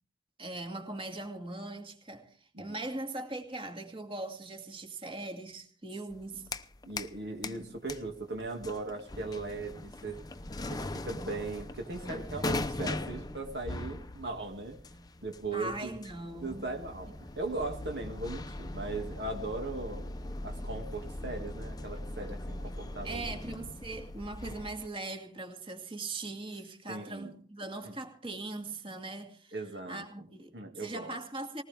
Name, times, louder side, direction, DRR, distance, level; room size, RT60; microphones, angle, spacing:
voice 1, 0.4-6.5 7.4-7.7 15.5-16.7 23.0-29.6 29.9-31.6, right 2 dB, 30° right, 2.5 m, -40 dB
sound 1, 6.1-7.2 7.4-24.9, left 2 dB, 20° left, 0.8 m, -40 dB
voice 2, 6.8-10.2 10.7-14.8 15.2-15.9 16.4-23.4 26.9-27.4 27.8-27.9 29.5-30.0 30.5-31.2, right 2 dB, 60° right, 2.2 m, -38 dB
20.5 x 19.0 x 3.5 m
head